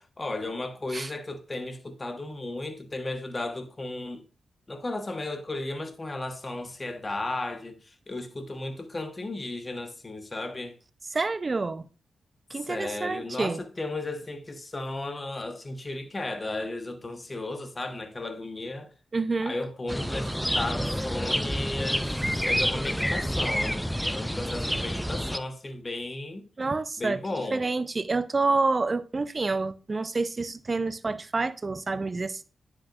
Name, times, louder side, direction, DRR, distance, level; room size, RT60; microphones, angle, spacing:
voice 1, 0.0-4.2 4.7-10.8 12.6-18.9 19.4-23.8 24.1-26.4 27.0-27.7, left 2 dB, 35° left, 1.4 m, -35 dB
voice 2, 11.1-11.9 12.5-13.6 19.1-19.5 26.6-27.2 27.5-32.4, right 3 dB, 40° right, 0.7 m, -28 dB
sound 1, 19.9-25.4, equal, ahead, 0.5 m, -28 dB
10.0 x 6.0 x 2.6 m
supercardioid pair, 40°, 0 cm